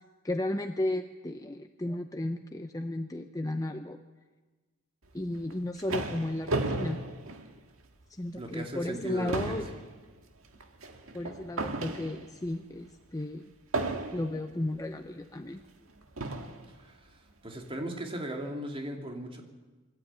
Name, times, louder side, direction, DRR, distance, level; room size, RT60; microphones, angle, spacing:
voice 1, 0.2-4.0 5.1-7.0 8.2-9.7 11.1-13.5 14.1-15.6, left 1 dB, 15° left, 6 dB, 0.7 m, -34 dB
sound 1, 5.3-8.0 8.5-8.6 8.9-12.5 13.7-14.5 15.4-15.5 16.2-16.7, right 2 dB, 90° right, 1.8 m, -34 dB
voice 2, 8.3-9.6 16.7-19.5, right 1 dB, 25° right, 2 dB, 2.7 m, -38 dB
24.5 x 12.5 x 9.0 m, 1.3 s
head